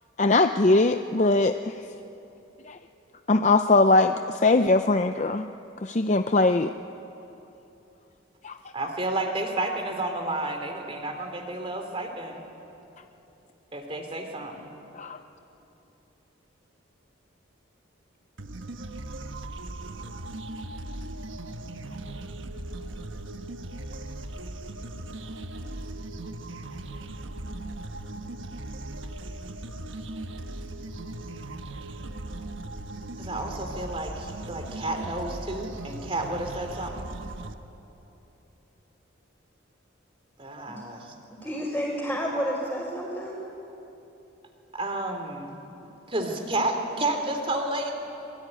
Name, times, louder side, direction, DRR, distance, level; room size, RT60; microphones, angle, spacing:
voice 1, 0.2-1.7 2.7-2.8 3.3-5.5 5.8-6.7 8.4-8.5 15.0-15.2, left 2 dB, 35° left, 8 dB, 0.5 m, -21 dB
voice 2, 8.7-12.4 13.7-14.7 33.2-37.1 40.4-41.1 41.4-41.6 44.7-45.6 46.1-47.9, right 2 dB, 30° right, 4 dB, 3.0 m, -31 dB
sound 1, 18.4-37.5, right 2 dB, 75° right, 1.3 m, -38 dB
voice 3, 41.4-43.4, equal, 5° left, -8 dB, 4.8 m, -30 dB
26.0 x 22.5 x 10.0 m, 3.0 s
head